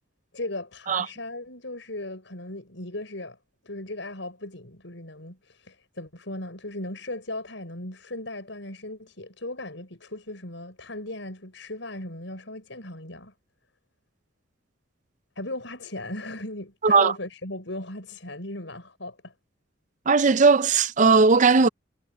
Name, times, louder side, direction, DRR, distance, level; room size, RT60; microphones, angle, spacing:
voice 1, 0.3-3.4 3.6-13.3 15.4-19.3, left 2 dB, 70° left, 6.3 m, -37 dB
voice 2, 16.8-17.1 20.1-21.7, right 4 dB, 40° right, 0.5 m, -18 dB
head